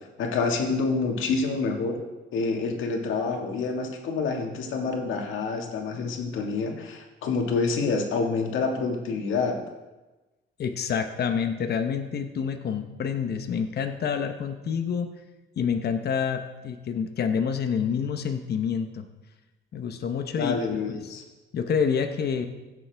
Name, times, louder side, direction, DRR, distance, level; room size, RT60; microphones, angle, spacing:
voice 1, 0.2-2.0 2.3-9.6 20.4-21.2, left 4 dB, 80° left, 2 dB, 1.8 m, -27 dB
voice 2, 10.6-15.1 15.6-19.1 19.7-20.6 20.9-21.2 21.5-22.5, left 6 dB, 55° left, 6 dB, 0.9 m, -28 dB
16.5 x 7.1 x 3.5 m, 1.1 s
cardioid pair, 90°, 20 cm